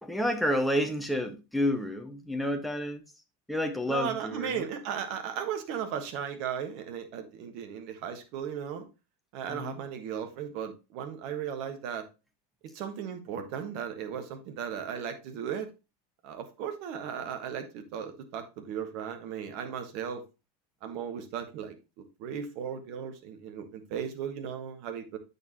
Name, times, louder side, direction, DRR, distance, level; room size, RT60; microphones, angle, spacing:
voice 1, 0.0-3.0 3.5-4.6 9.5-9.8, equal, 5° left, 1.3 m, -30 dB
voice 2, 3.9-8.9 9.3-12.0 12.7-15.7 16.2-20.2 20.8-21.7 22.2-25.2, right 8 dB, 45° right, 1.4 m, -36 dB
8.4 x 6.6 x 3.0 m
figure-of-eight pair, 90°, 0 cm